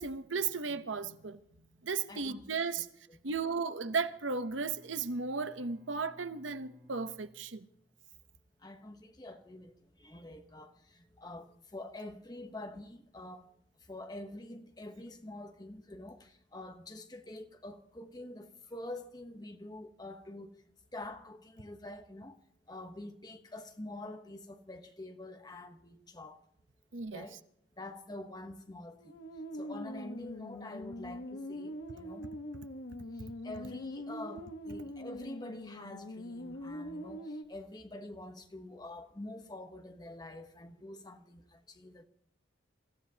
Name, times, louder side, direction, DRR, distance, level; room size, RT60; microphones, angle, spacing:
voice 1, 0.0-1.4 1.8-2.8 3.2-7.7 26.9-27.3, right 4 dB, 80° right, 0.9 m, -35 dB
voice 2, 2.1-2.8 3.1-3.2 8.6-13.5 13.8-20.5 20.9-22.4 22.7-26.4 27.1-27.4 27.8-29.1 29.5-32.3 33.1-42.0, left 1 dB, 20° left, 1.0 m, -46 dB
Bowed string instrument, 3.9-8.2, left 1 dB, 55° right, 5.0 m, -60 dB
sound 1, 28.9-37.4, equal, 80° left, 1.3 m, -43 dB
27.0 x 15.0 x 2.9 m
head